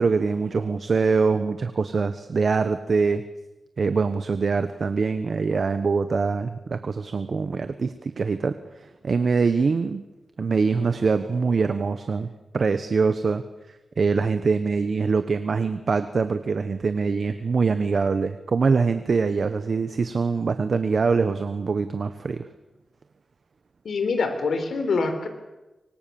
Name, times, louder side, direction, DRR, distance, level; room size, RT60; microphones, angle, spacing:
voice 1, 0.0-3.2 3.8-8.6 9.0-10.0 10.4-13.4 14.0-22.5, right 4 dB, 60° right, 10 dB, 1.2 m, -23 dB
voice 2, 23.8-25.3, left 4 dB, 90° left, 7 dB, 4.2 m, -25 dB
26.0 x 25.0 x 7.1 m, 1.1 s
wide cardioid pair, 105°, 0 cm